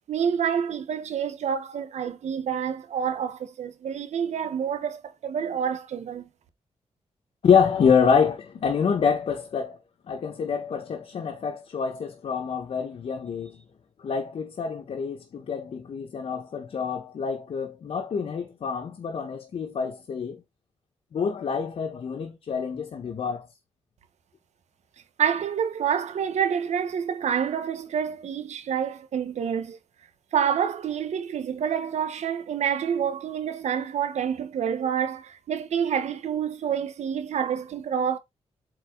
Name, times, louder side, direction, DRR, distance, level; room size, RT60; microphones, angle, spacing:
voice 1, 0.1-6.3 25.2-29.8 30.3-38.2, right 8 dB, 75° right, 1.3 m, -28 dB
voice 2, 7.4-9.8 10.1-13.6 14.0-20.4 21.1-23.5, left 6 dB, 55° left, 1.5 m, -26 dB
8.4 x 4.5 x 4.0 m
wide cardioid pair, 175°, 12 cm